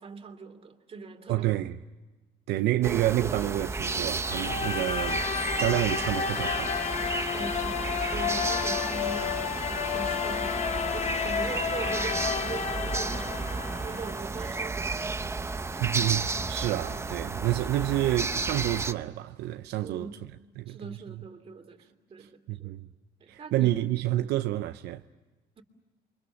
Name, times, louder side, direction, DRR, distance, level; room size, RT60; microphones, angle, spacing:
voice 1, 0.0-1.5 7.3-15.3 19.8-20.2 20.7-22.7 23.2-23.7, right 4 dB, 35° right, 2.9 m, -41 dB
voice 2, 1.3-1.8 2.5-5.3 5.6-6.8 15.7-20.1 20.6-21.0 22.2-22.9 23.3-25.0, right 15 dB, 80° right, 0.7 m, -29 dB
sound 1, 2.8-18.9, right 3 dB, 15° right, 0.8 m, -33 dB
sound 2, 4.2-14.2, left 7 dB, 45° left, 1.1 m, -31 dB
29.0 x 24.5 x 7.0 m
cardioid pair, 110°, 17 cm